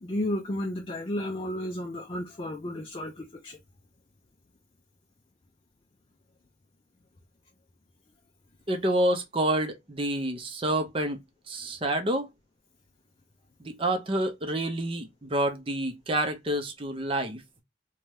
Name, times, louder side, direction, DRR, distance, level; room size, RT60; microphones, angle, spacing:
voice 1, 0.0-3.6, left 1 dB, 30° left, 0.4 m, -33 dB
voice 2, 8.7-12.3 13.6-17.4, right 1 dB, 30° right, 0.6 m, -28 dB
2.7 x 2.3 x 3.1 m
head